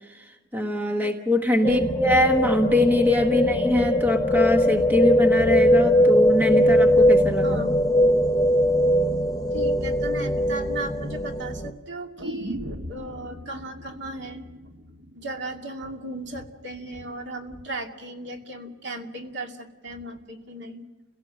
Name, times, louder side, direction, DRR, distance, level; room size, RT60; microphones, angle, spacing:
voice 1, 0.5-7.6, left 2 dB, 10° right, 4 dB, 1.1 m, -23 dB
sound 1, 1.6-11.7, equal, 15° left, 0.8 m, -20 dB
voice 2, 1.6-2.0 3.3-3.5 7.4-7.8 9.5-14.4 15.1-20.8, right 2 dB, 55° right, 3 dB, 2.5 m, -36 dB
sound 2, 12.2-16.2 16.5-16.6, equal, 75° right, 1.6 m, -38 dB
29.5 x 17.5 x 7.6 m, 1.2 s
head